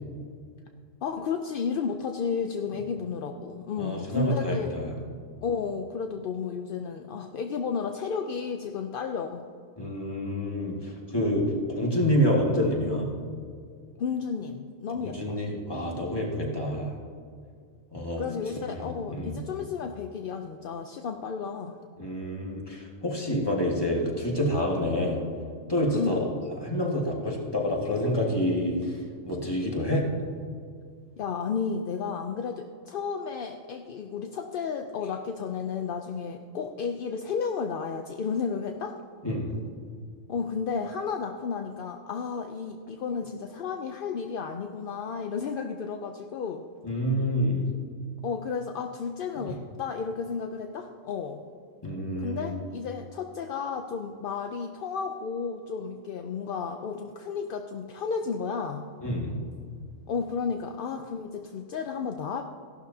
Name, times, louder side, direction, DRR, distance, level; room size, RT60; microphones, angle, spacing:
voice 1, 1.0-4.7 5.4-9.4 14.0-15.4 18.2-21.8 25.9-26.3 31.2-39.0 40.3-46.6 48.2-51.4 52.2-58.9 60.1-62.4, left 6 dB, 60° left, 5 dB, 0.6 m, -32 dB
voice 2, 3.8-4.9 9.8-13.1 15.0-16.9 17.9-18.2 18.5-19.4 22.0-25.3 25.7-26.2 26.6-29.0 29.2-30.1 39.2-39.5 46.8-47.6 51.8-52.5 59.0-59.3, equal, 20° left, -2 dB, 1.9 m, -28 dB
16.0 x 12.0 x 2.8 m, 2.2 s
omnidirectional pair, 1.4 m